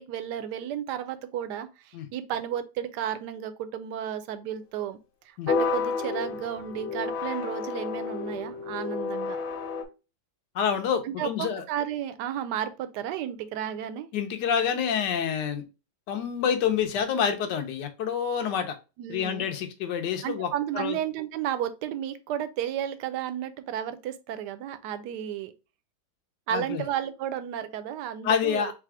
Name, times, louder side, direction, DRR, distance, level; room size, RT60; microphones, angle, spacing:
voice 1, 0.0-5.0 5.2-9.4 11.0-14.1 19.0-19.5 20.2-25.5 26.5-28.7, right 10 dB, 75° right, 1.0 m, -33 dB
sound 1, 5.5-9.8, left 5 dB, 85° left, 1.6 m, -30 dB
voice 2, 10.5-11.6 14.1-15.6 16.1-18.8 19.1-20.5 20.7-21.0 26.5-26.8 28.2-28.7, left 7 dB, 65° left, 1.3 m, -27 dB
4.1 x 2.4 x 4.6 m
omnidirectional pair, 2.1 m